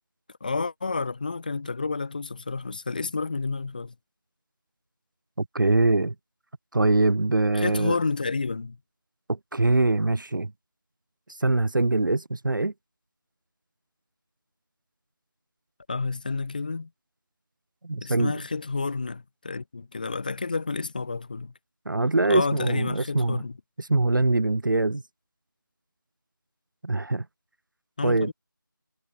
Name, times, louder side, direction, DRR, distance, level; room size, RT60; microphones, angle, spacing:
voice 1, 0.4-3.9 7.5-8.8 15.9-16.9 18.0-21.5 22.2-23.6 28.0-28.3, left 4 dB, 25° left, 3.5 m, -30 dB
voice 2, 5.4-6.1 6.7-8.0 9.3-10.5 11.4-12.7 17.8-18.3 21.9-23.4 23.8-25.0 26.8-27.2 28.0-28.3, right 2 dB, 70° right, 0.8 m, -23 dB
figure-of-eight pair, 175°, 11 cm